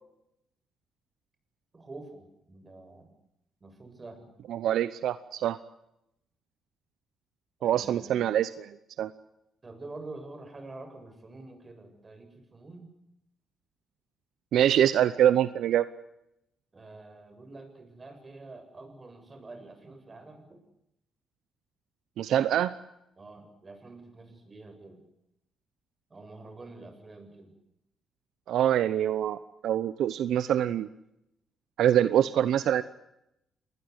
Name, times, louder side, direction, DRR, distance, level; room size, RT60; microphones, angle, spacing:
voice 1, 1.7-3.1 3.6-4.3 7.6-8.3 9.6-12.9 16.7-20.6 23.2-25.0 26.1-27.5, right 2 dB, 30° right, 7 dB, 7.8 m, -47 dB
voice 2, 4.5-5.6 7.6-9.1 14.5-15.9 22.2-22.7 28.5-30.9 31.8-32.8, right 10 dB, 75° right, 14 dB, 0.8 m, -25 dB
27.0 x 20.5 x 8.1 m, 0.83 s
cardioid pair, 90°, 0 cm